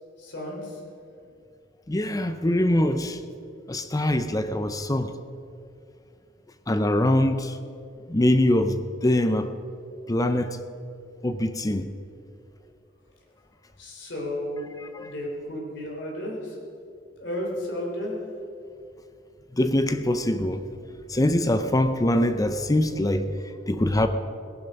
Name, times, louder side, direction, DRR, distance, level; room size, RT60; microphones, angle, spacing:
voice 1, 0.2-0.8 13.8-14.7 15.0-16.6 17.2-18.2, left 1 dB, 70° left, -2 dB, 3.5 m, -33 dB
voice 2, 1.9-3.2 3.7-5.1 6.7-7.5 8.1-8.8 9.0-9.5 10.1-10.6 11.2-11.9 14.8-15.1 19.6-20.6 21.1-24.1, left 1 dB, 20° left, 9 dB, 0.6 m, -23 dB
18.0 x 11.0 x 5.3 m, 2.5 s
head